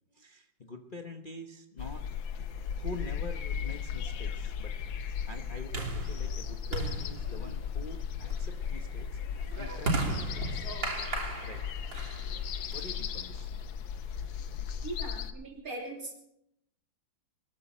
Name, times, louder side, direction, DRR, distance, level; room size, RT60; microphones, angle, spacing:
voice 1, 0.1-2.0 2.7-9.1 9.3-10.5 11.4-11.6 12.6-13.5, left 2 dB, 30° left, 3 dB, 1.1 m, -45 dB
sound 1, 1.8-15.3, left 7 dB, 85° left, 1.7 m, -36 dB
sound 2, 3.0-13.4, right 3 dB, 75° right, 4.0 m, -38 dB
voice 2, 14.8-16.1, right 2 dB, 45° right, 1 dB, 3.6 m, -40 dB
21.5 x 14.0 x 4.4 m, 0.78 s
omnidirectional pair, 2.1 m